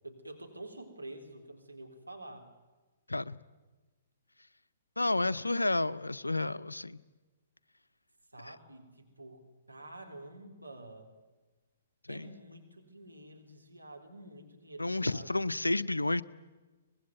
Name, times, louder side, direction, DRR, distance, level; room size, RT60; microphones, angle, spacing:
voice 1, 0.0-2.5 8.3-9.4 9.7-11.1 12.1-15.4, right 2 dB, 85° right, 3 dB, 3.6 m, -48 dB
voice 2, 5.0-7.0 12.1-12.3 14.8-16.2, left 2 dB, 80° left, 15 dB, 0.7 m, -31 dB
24.0 x 20.5 x 9.3 m, 1.2 s
figure-of-eight pair, 120°, 0 cm